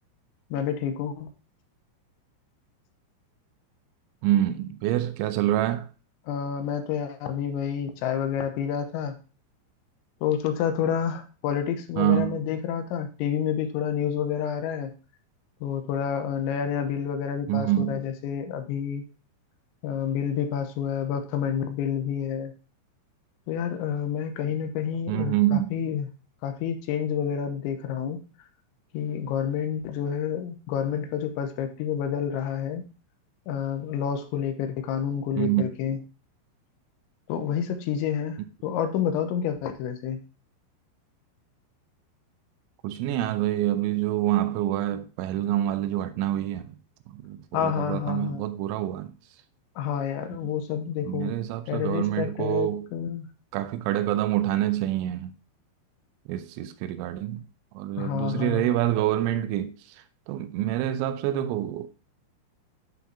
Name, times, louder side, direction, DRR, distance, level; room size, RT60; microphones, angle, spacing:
voice 1, 0.5-1.3 6.3-9.2 10.2-14.9 15.6-19.0 19.8-22.5 23.5-26.1 26.4-28.2 28.9-32.8 33.5-36.0 37.3-40.2 47.5-48.5 49.8-51.3 51.7-53.3 58.0-58.7, left 8 dB, 85° left, 3.1 m, -29 dB
voice 2, 4.2-5.9 12.0-12.4 17.5-18.0 25.1-25.7 35.4-35.6 42.8-46.7 47.1-49.1 51.1-52.9 53.5-55.3 56.3-57.4 57.8-59.7 60.3-61.9, right 13 dB, 85° right, 3.0 m, -26 dB
11.5 x 4.6 x 2.7 m
omnidirectional pair, 5.3 m